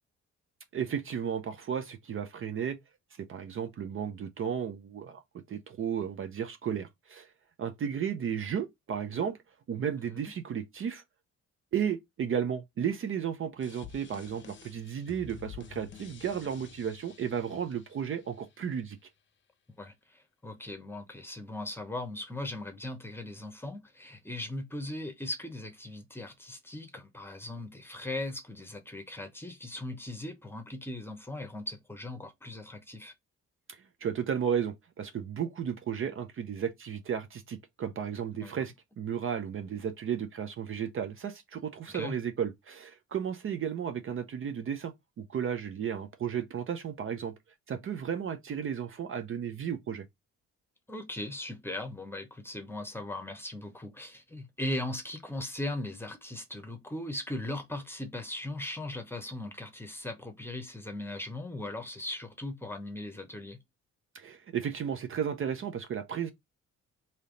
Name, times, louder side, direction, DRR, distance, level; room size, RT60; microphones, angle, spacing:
voice 1, 0.7-2.8 3.2-5.2 5.5-7.3 7.6-9.4 9.7-11.0 11.7-19.0 33.7-47.3 47.7-50.0 64.1-66.3, right 8 dB, 45° right, 0.5 m, -34 dB
sound 1, 13.6-18.6, left 6 dB, 40° left, 0.7 m, -50 dB
voice 2, 19.8-33.1 38.4-38.5 41.9-42.2 50.9-63.6, left 1 dB, 5° left, 0.9 m, -39 dB
3.3 x 2.8 x 3.8 m
cardioid pair, 90°, 30 cm